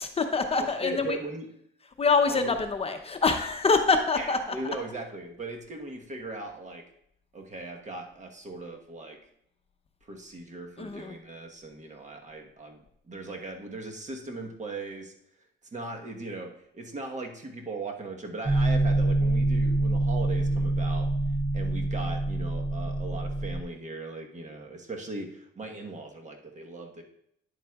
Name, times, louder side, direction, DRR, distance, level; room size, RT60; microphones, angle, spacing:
voice 1, 0.0-1.2 2.0-4.6 10.8-11.1, left 4 dB, 30° left, 5 dB, 0.7 m, -25 dB
voice 2, 0.6-1.5 2.3-2.6 4.2-6.8 7.3-9.2 10.0-15.1 15.7-21.1 21.5-27.0, right 2 dB, 35° right, 2 dB, 1.2 m, -39 dB
sound 1, 18.5-23.6, right 2 dB, 20° right, 0.6 m, -26 dB
9.9 x 7.4 x 2.4 m, 0.74 s
cardioid pair, 90°, 20 cm